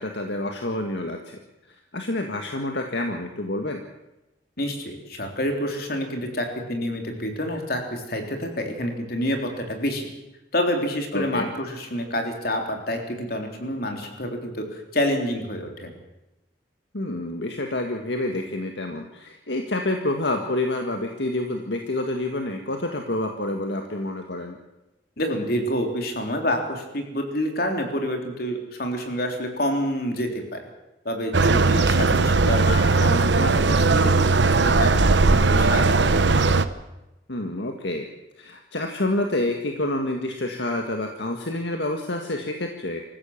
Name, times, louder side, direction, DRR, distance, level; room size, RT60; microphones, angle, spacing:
voice 1, 0.0-1.4 1.9-3.8 11.1-11.5 16.9-24.6 31.7-32.2 37.3-38.1 38.4-43.0, left 1 dB, 75° left, 4 dB, 1.8 m, -28 dB
voice 2, 4.6-10.0 10.5-15.9 25.2-30.6 31.0-34.3 34.5-36.2, equal, 55° left, 3 dB, 3.8 m, -28 dB
sound 1, 31.3-36.7, right 3 dB, 80° right, 1.0 m, -18 dB
25.5 x 15.0 x 7.4 m, 0.98 s
head